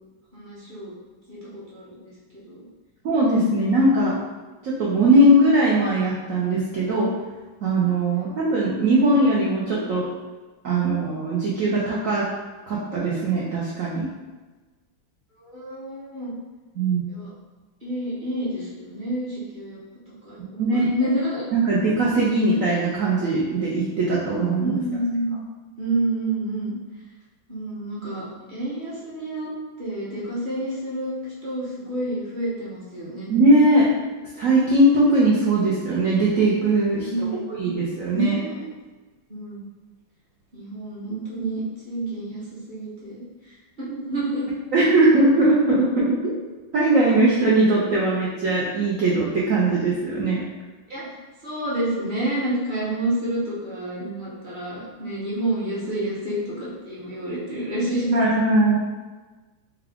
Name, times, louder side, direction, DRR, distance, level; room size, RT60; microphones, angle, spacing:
voice 1, 0.3-0.9 1.3-2.7 15.4-16.4 17.1-17.3 17.8-19.8 20.2-21.4 24.6-25.4 25.8-26.7 27.5-29.5 29.8-33.3 37.0-37.7 38.1-38.6 39.3-39.7 40.5-44.5 50.9-51.0 51.4-58.2, right 1 dB, 40° right, -8 dB, 0.7 m, -29 dB
voice 2, 3.0-4.2 4.6-7.1 7.6-10.1 10.6-12.3 12.7-14.1 16.8-17.0 20.6-20.9 21.5-24.8 33.3-33.9 34.4-38.3 44.7-46.3 46.7-50.4 58.1-58.8, right 1 dB, 85° right, -5 dB, 0.7 m, -20 dB
4.7 x 2.4 x 3.4 m, 1.3 s
omnidirectional pair, 2.2 m